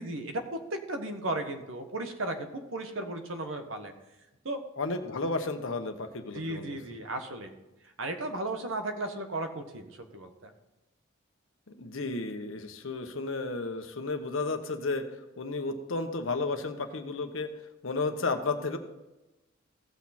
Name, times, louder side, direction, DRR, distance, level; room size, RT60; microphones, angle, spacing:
voice 1, 0.0-3.9 4.4-4.6 6.3-7.5 8.0-10.5, right 2 dB, 75° right, 6 dB, 1.3 m, -35 dB
voice 2, 4.8-6.8 11.8-15.0 15.4-17.5 17.8-18.8, left 3 dB, 75° left, 6 dB, 1.1 m, -32 dB
16.0 x 6.3 x 4.3 m, 1.0 s
head